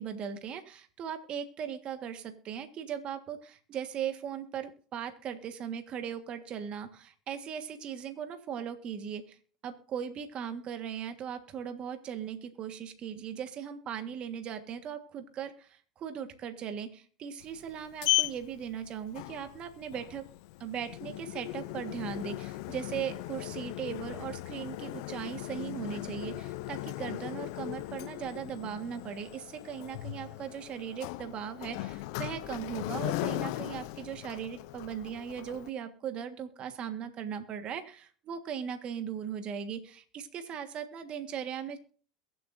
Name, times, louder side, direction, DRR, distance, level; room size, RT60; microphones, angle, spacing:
voice 1, 0.0-9.4 9.6-20.2 20.6-41.8, right 8 dB, 45° right, 8 dB, 1.6 m, -38 dB
Sliding door, 17.4-35.7, left 19 dB, 70° left, 0.5 m, -37 dB
22.5 x 7.8 x 2.6 m, 0.42 s
supercardioid pair, 105°, 3 cm